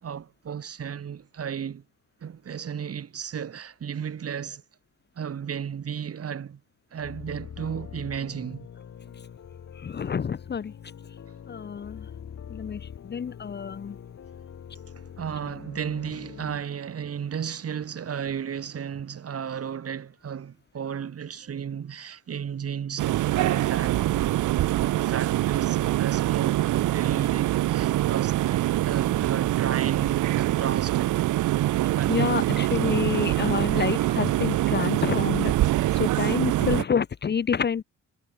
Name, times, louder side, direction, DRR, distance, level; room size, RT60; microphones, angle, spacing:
voice 1, 0.0-1.8 2.2-4.6 5.2-6.6 6.9-8.7 14.9-24.4 24.9-31.1 31.9-32.7, right 8 dB, 50° right, 4.2 m, -34 dB
sound 1, 7.0-16.6, left 8 dB, 55° left, 3.8 m, -43 dB
voice 2, 9.8-10.7 11.5-12.1 12.5-14.0 32.1-35.5 35.9-37.8, left 7 dB, 35° left, 0.9 m, -28 dB
sound 2, 23.0-36.8, right 15 dB, 80° right, 1.2 m, -24 dB
cardioid pair, 90°, 30 cm